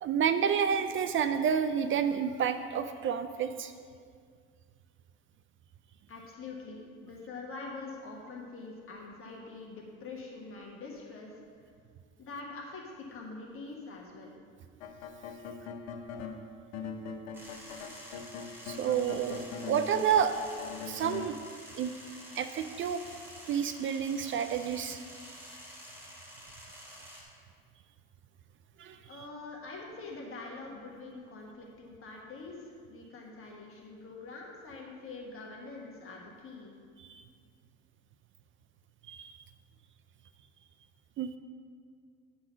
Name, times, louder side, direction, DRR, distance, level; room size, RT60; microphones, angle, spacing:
voice 1, 0.0-3.7 18.6-20.3 20.8-21.4 21.8-21.9 22.4-23.0 23.5-25.0 28.8-29.0 37.0-37.2 39.1-39.3 41.2-41.4, right 8 dB, 45° right, 9 dB, 0.4 m, -29 dB
voice 2, 6.1-11.7 12.2-14.3 29.0-36.7, left 3 dB, 45° left, -1 dB, 1.4 m, -44 dB
sound 1, 14.8-16.4 16.7-21.2, left 5 dB, 90° left, 0.8 m, -41 dB
sound 2, 17.3-27.2, equal, 5° right, 2.3 m, -49 dB
9.5 x 3.9 x 6.1 m, 2.1 s
supercardioid pair, 95°, 30 cm